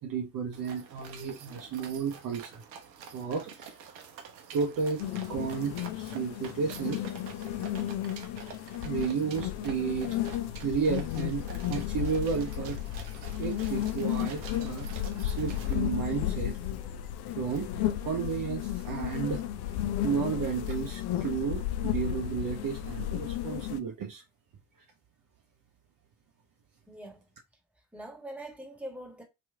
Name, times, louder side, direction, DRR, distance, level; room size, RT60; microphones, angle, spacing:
voice 1, 0.0-2.6 3.1-3.8 4.5-7.0 8.8-10.2 10.6-12.8 13.4-14.9 15.2-16.9 17.4-24.2, right 6 dB, 40° right, 0.7 m, -33 dB
sound 1, 0.5-15.7, right 7 dB, 90° right, 0.6 m, -48 dB
sound 2, 5.0-23.8, left 12 dB, 55° left, 0.6 m, -33 dB
voice 2, 26.9-27.2 27.9-29.2, right 1 dB, 5° right, 1.5 m, -43 dB
3.0 x 2.5 x 3.3 m
hypercardioid pair, 55°, 49 cm